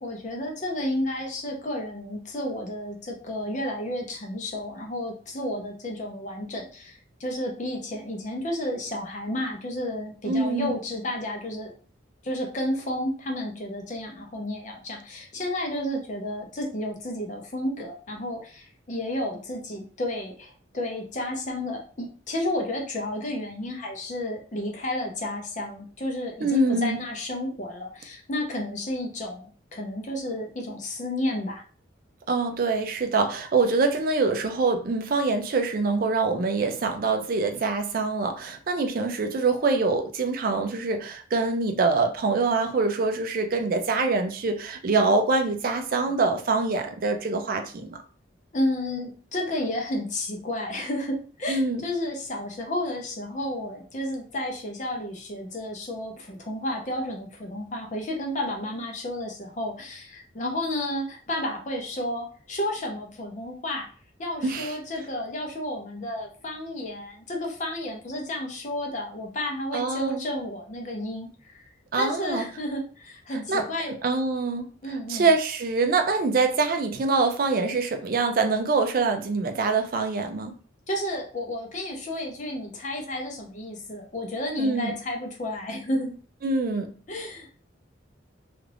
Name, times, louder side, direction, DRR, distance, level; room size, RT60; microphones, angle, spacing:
voice 1, 0.0-11.7 12.2-31.6 48.5-63.9 64.2-71.6 72.0-73.9 74.8-75.3 80.9-86.1 87.1-87.5, left 1 dB, 40° left, 0.6 m, -31 dB
voice 2, 10.3-10.8 26.4-27.0 32.3-48.0 51.5-51.8 64.4-64.7 69.7-70.2 71.9-72.4 73.3-80.6 84.6-84.9 86.4-86.9, right 3 dB, 45° right, 0.4 m, -25 dB
2.4 x 2.4 x 3.3 m
head